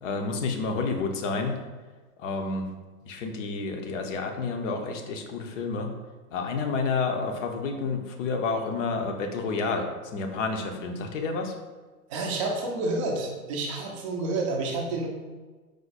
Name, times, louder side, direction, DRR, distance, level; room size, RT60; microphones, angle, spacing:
voice 1, 0.0-1.6 2.2-2.7 3.1-5.9 6.3-9.9 10.1-11.5, left 4 dB, 55° left, 4 dB, 0.7 m, -29 dB
voice 2, 12.1-15.1, right 2 dB, 25° right, 0 dB, 0.4 m, -29 dB
4.9 x 2.1 x 4.0 m, 1.3 s
hypercardioid pair, 150°, 45 cm